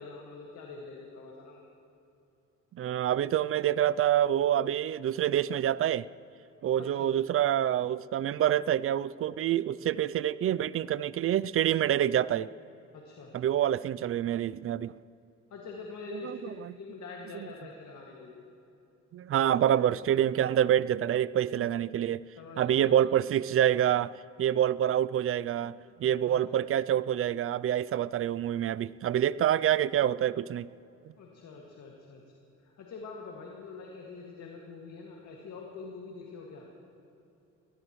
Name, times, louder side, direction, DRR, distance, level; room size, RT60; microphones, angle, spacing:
voice 1, 0.0-1.6 6.8-7.1 12.9-13.3 15.5-18.4 22.4-23.1 26.3-26.6 31.2-32.2 32.6-36.7, left 4 dB, 65° left, -1 dB, 2.1 m, -45 dB
voice 2, 2.7-6.1 6.6-12.5 13.3-14.9 16.1-16.7 17.3-17.5 19.1-22.2 22.6-24.1 24.4-30.7, right 11 dB, 50° right, 18 dB, 0.4 m, -27 dB
22.5 x 18.5 x 3.1 m, 2.8 s
cardioid pair, 90°, 30 cm